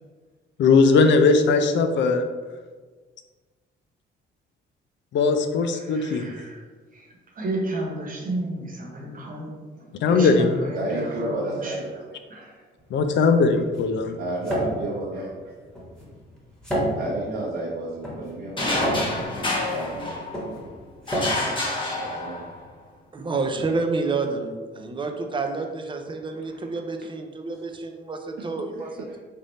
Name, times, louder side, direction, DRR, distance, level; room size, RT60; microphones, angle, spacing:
voice 1, 0.6-2.2 5.1-6.3 10.0-10.5 12.9-14.2, left 4 dB, 65° left, 7 dB, 0.4 m, -19 dB
voice 2, 5.7-6.6 6.9-9.5 9.8-11.9 12.3-12.6 26.3-26.4, right 1 dB, 45° right, -1 dB, 1.1 m, -32 dB
voice 3, 10.7-11.9 14.2-15.3 17.0-19.3 19.7-20.2 21.9-22.4 28.7-29.2, right 2 dB, 70° right, -5 dB, 0.8 m, -31 dB
sound 1, 12.8-22.6, equal, 5° left, 1.4 m, -32 dB
sound 2, 18.6-20.6 21.1-22.6, left 2 dB, 25° left, 0.9 m, -28 dB
voice 4, 23.1-28.9, right 3 dB, 25° right, 4 dB, 0.5 m, -29 dB
3.4 x 2.5 x 4.0 m, 1.4 s
cardioid pair, 90°, 20 cm